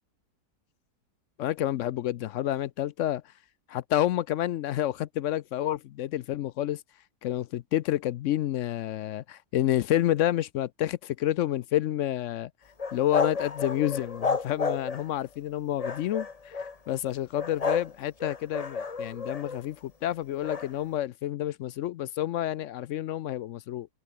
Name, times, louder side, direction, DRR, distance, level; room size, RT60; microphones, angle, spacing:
voice 1, 1.4-3.2 3.7-6.8 7.2-12.5 12.9-23.9, left 13 dB, 70° left, 0.7 m, -29 dB
sound 1, 12.8-15.2 15.8-16.7 17.4-17.9 18.2-19.6 20.4-20.7, left 4 dB, 30° left, 0.9 m, -31 dB
omnidirectional pair, 1.7 m